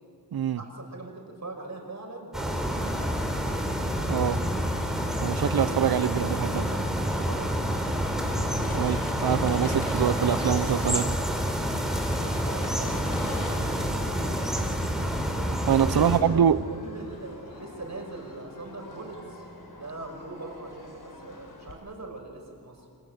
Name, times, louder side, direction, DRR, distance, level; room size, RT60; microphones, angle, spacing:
voice 1, 0.5-3.1 6.0-7.6 12.4-14.4 15.8-19.4 19.7-22.9, right 2 dB, 50° right, 2 dB, 6.1 m, -41 dB
sound 1, 2.3-16.2, equal, ahead, 4.5 m, -28 dB
sound 2, 2.6-21.7, left 2 dB, 80° left, 5.4 m, -46 dB
voice 2, 4.1-4.4 5.2-6.6 8.7-11.1 15.7-16.6, right 9 dB, 85° right, 15 dB, 0.8 m, -24 dB
28.0 x 26.0 x 7.9 m, 2.5 s
wide cardioid pair, 90°, 36 cm